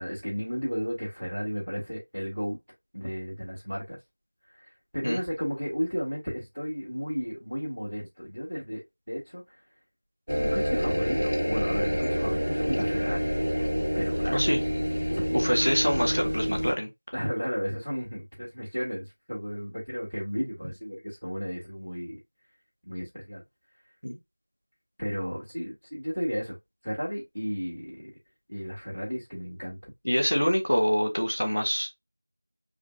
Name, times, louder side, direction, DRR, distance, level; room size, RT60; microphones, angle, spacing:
voice 1, 0.0-2.6 2.9-4.0 4.5-9.6 10.3-13.3 13.9-14.4 15.1-15.3 17.1-22.2 22.9-23.4 25.0-26.6 26.8-28.1 28.5-29.9, equal, 80° left, 2.2 m, -33 dB
sound 1, 10.3-16.7, equal, 75° right, 1.5 m, -27 dB
voice 2, 15.3-16.9 24.0-24.2 30.0-31.9, equal, 40° left, 1.0 m, -25 dB
4.9 x 2.4 x 2.4 m
figure-of-eight pair, 180°, 0 cm